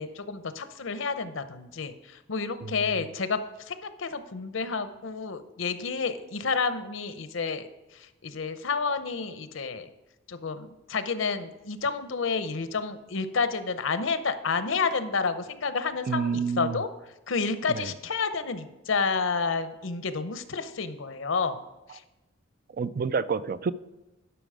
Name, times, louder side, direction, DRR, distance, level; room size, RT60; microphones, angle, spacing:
voice 1, 0.0-1.9 2.3-3.4 3.7-7.7 8.2-9.9 10.3-16.9 17.3-21.6 21.9-22.0, left 5 dB, 75° left, 11 dB, 0.7 m, -30 dB
voice 2, 16.1-16.8 17.7-17.9 22.7-23.7, right 5 dB, 50° right, 16 dB, 0.4 m, -28 dB
11.0 x 6.0 x 4.9 m, 1.0 s
head